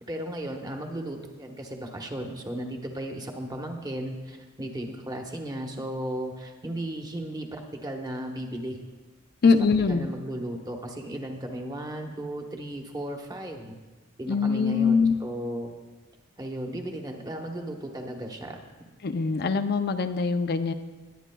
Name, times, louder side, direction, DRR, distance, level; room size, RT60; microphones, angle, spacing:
voice 1, 0.1-8.8 9.4-9.5 9.9-13.7 14.2-15.7 16.4-18.6, right 1 dB, 20° right, 2 dB, 1.1 m, -35 dB
voice 2, 9.4-10.1 14.3-15.2 19.0-20.7, left 5 dB, 50° left, 9 dB, 0.5 m, -23 dB
20.0 x 9.3 x 2.3 m, 1.3 s
head